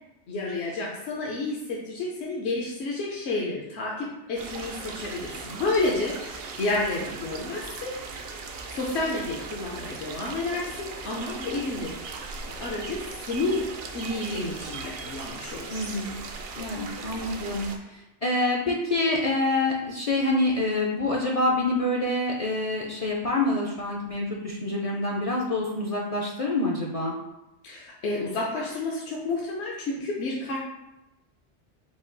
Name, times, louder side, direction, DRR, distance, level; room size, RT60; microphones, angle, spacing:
voice 1, 0.3-7.9 8.7-11.9 12.6-13.7 13.9-15.9 27.6-30.6, left 2 dB, 75° left, -4 dB, 1.0 m, -30 dB
sound 1, 4.4-17.8, right 4 dB, 65° right, 0.7 m, -38 dB
voice 2, 15.7-16.2 16.6-27.1, left 2 dB, 45° left, -2 dB, 0.5 m, -26 dB
5.0 x 2.3 x 3.8 m, 0.93 s
omnidirectional pair, 1.2 m